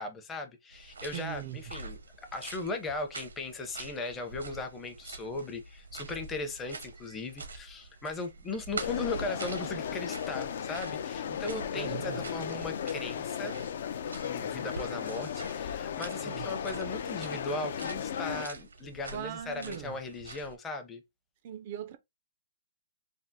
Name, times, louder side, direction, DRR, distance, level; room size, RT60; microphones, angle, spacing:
voice 1, 0.0-2.0 2.3-13.6 14.2-21.0, left 3 dB, 15° left, 0.6 m, -38 dB
sound 1, 0.7-20.6, right 3 dB, 85° right, 0.7 m, -46 dB
voice 2, 1.1-1.6 11.7-12.2 16.2-16.5 19.1-20.0 21.4-22.0, right 11 dB, 40° right, 0.3 m, -40 dB
sound 2, 8.8-18.5, left 8 dB, 55° left, 0.4 m, -36 dB
3.3 x 2.0 x 2.7 m
hypercardioid pair, 140°, 0 cm